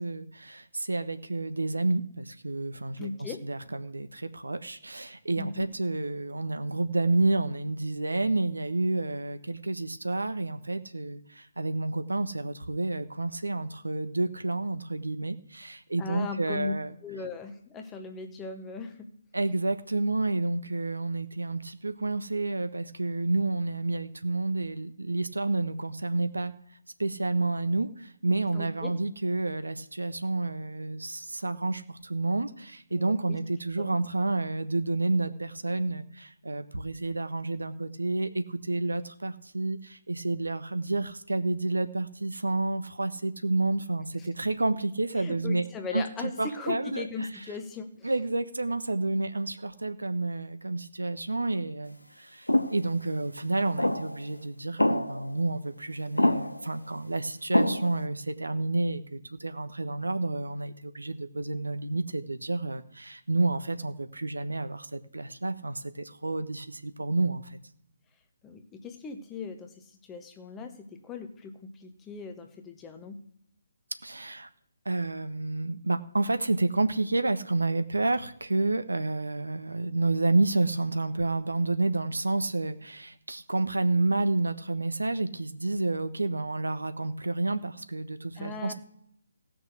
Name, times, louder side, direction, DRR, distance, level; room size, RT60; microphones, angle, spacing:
voice 1, 0.0-16.9 19.3-26.5 27.0-45.7 45.9-47.3 48.0-67.6 74.0-74.5 74.8-88.7, right 2 dB, 75° right, 10 dB, 1.1 m, -30 dB
voice 2, 3.0-3.4 5.4-5.7 16.0-16.7 17.0-19.1 28.5-28.9 32.9-33.4 33.8-34.0 45.2-48.1 68.4-73.2 88.4-88.7, left 5 dB, 10° left, 6 dB, 1.2 m, -38 dB
sound 1, 52.5-52.8 53.8-54.2 54.8-55.3 56.2-56.7 57.5-58.1, left 1 dB, 85° left, 0.9 m, -25 dB
16.5 x 6.2 x 6.3 m, 0.73 s
figure-of-eight pair, 140°, 0 cm